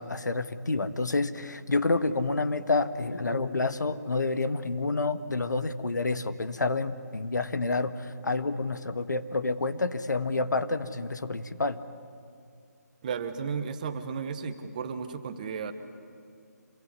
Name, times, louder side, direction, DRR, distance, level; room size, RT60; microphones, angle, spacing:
voice 1, 0.0-11.8, left 3 dB, 90° left, 11 dB, 1.6 m, -29 dB
voice 2, 13.0-15.7, right 6 dB, 25° right, 8 dB, 1.4 m, -34 dB
27.0 x 22.5 x 9.8 m, 2.4 s
hypercardioid pair, 165°, 9 cm